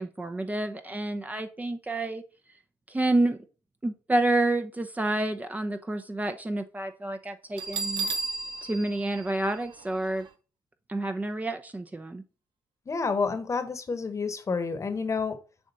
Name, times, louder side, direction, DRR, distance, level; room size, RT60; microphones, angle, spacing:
voice 1, 0.0-2.2 2.9-3.4 3.8-8.1 8.6-10.3 10.9-12.2, right 2 dB, 20° right, 7 dB, 0.7 m, -29 dB
Bell, 7.6-10.3, right 4 dB, 70° right, 0.7 m, -34 dB
voice 2, 12.9-15.4, left 4 dB, 40° left, 10 dB, 1.1 m, -29 dB
7.0 x 2.5 x 5.5 m, 0.35 s
supercardioid pair, 65°, 8 cm